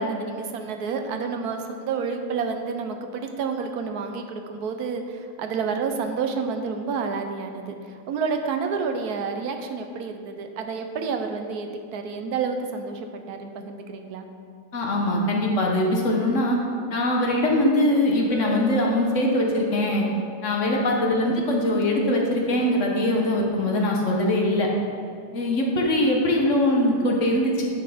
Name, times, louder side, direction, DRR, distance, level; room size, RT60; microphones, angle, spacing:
voice 1, 0.0-14.3, right 5 dB, 75° right, 6 dB, 1.2 m, -29 dB
voice 2, 14.7-16.6 16.9-20.0 20.4-24.7 25.3-27.7, left 1 dB, 55° left, 0 dB, 1.4 m, -22 dB
Chink clink, 18.3-22.5, left 3 dB, 40° right, 1.6 m, -39 dB
9.2 x 5.8 x 5.0 m, 2.3 s
omnidirectional pair, 1.7 m